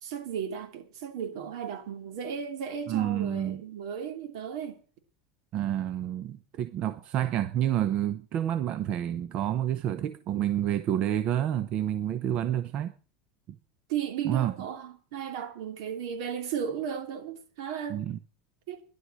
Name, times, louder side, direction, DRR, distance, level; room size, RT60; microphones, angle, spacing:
voice 1, 0.0-4.8 13.9-18.0 18.7-18.8, right 8 dB, 70° right, 3.1 m, -35 dB
voice 2, 2.9-3.6 5.5-12.9 14.2-14.5 17.9-18.2, right 11 dB, 35° right, 0.7 m, -29 dB
13.0 x 11.0 x 6.2 m
supercardioid pair, 160°, 3 cm